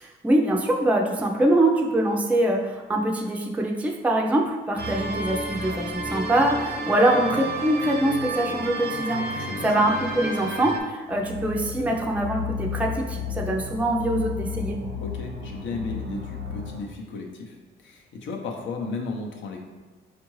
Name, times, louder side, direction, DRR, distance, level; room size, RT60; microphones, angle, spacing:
voice 1, 0.0-14.8, right 1 dB, 5° right, 0 dB, 0.4 m, -24 dB
sound 1, 4.8-10.8, right 2 dB, 55° right, 0.6 m, -31 dB
voice 2, 9.3-9.7 14.9-17.6 17.8-19.6, left 3 dB, 70° left, 2 dB, 0.7 m, -34 dB
sound 2, 11.1-16.8, left 6 dB, 85° right, 1.0 m, -33 dB
4.5 x 2.5 x 3.1 m, 1.3 s
cardioid pair, 90°, 20 cm